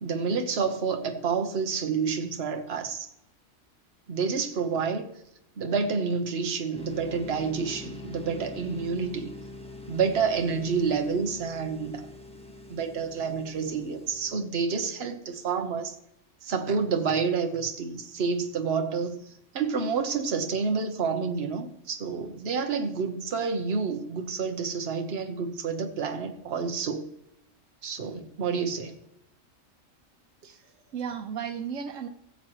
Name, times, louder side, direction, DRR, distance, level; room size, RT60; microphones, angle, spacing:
voice 1, 0.0-3.1 4.1-5.1 5.6-9.3 9.9-12.1 12.7-15.9 16.4-19.2 19.5-27.1 27.8-29.0, right 5 dB, 55° right, 5 dB, 1.2 m, -29 dB
sound 1, 6.7-14.3, left 2 dB, 5° left, 1.1 m, -44 dB
voice 2, 30.4-32.1, right 7 dB, 85° right, 7 dB, 1.3 m, -35 dB
17.5 x 7.7 x 3.1 m, 0.78 s
omnidirectional pair, 1.3 m